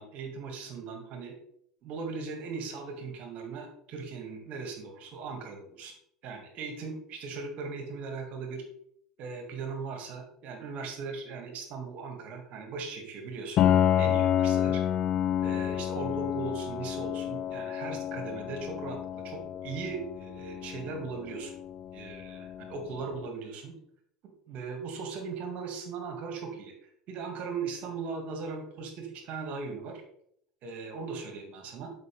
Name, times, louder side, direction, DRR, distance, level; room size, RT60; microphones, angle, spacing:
voice 1, 0.0-1.3 1.8-5.9 6.2-8.6 9.2-13.7 14.0-14.8 15.4-21.6 21.9-23.8 24.5-30.0 30.6-31.9, right 4 dB, 55° right, 3 dB, 2.3 m, -38 dB
Piano, 13.6-23.1, left 10 dB, 45° left, 0.6 m, -29 dB
12.0 x 5.6 x 3.6 m, 0.68 s
hypercardioid pair, 85°, 3 cm